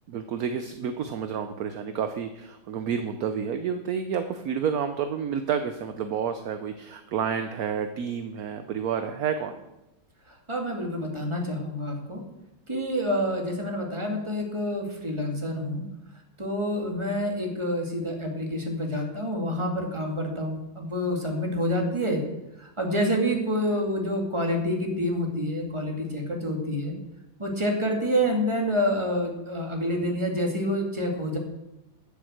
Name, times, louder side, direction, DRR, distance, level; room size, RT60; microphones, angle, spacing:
voice 1, 0.1-9.6, right 7 dB, 65° right, 8 dB, 1.1 m, -30 dB
voice 2, 10.3-12.2 12.7-15.8 16.4-22.2 22.6-26.9 27.4-31.4, equal, 15° right, 1 dB, 2.4 m, -28 dB
11.5 x 7.1 x 7.9 m, 0.94 s
omnidirectional pair, 1.9 m